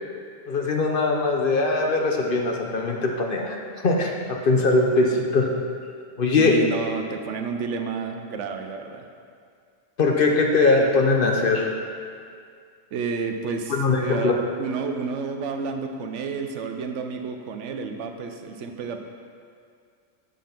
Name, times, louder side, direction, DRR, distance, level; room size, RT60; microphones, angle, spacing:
voice 1, 0.5-5.5 6.2-6.5 10.0-11.7 13.7-14.4, left 3 dB, 50° left, 1 dB, 0.8 m, -21 dB
voice 2, 6.4-9.1 12.9-19.0, right 5 dB, 75° right, 5 dB, 1.0 m, -30 dB
7.5 x 5.4 x 5.8 m, 2.2 s
omnidirectional pair, 1.3 m